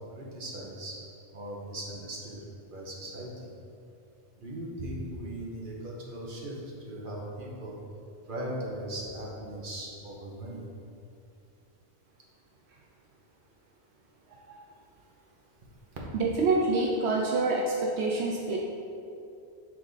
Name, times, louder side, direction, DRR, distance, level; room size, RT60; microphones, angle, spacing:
voice 1, 0.2-0.9 1.3-2.4 2.7-3.3 4.4-7.7 8.3-10.6, right 1 dB, 55° right, -3 dB, 1.2 m, -38 dB
voice 2, 16.1-18.6, right 3 dB, 80° right, -1 dB, 0.8 m, -26 dB
7.2 x 3.5 x 4.0 m, 2.6 s
omnidirectional pair, 1.1 m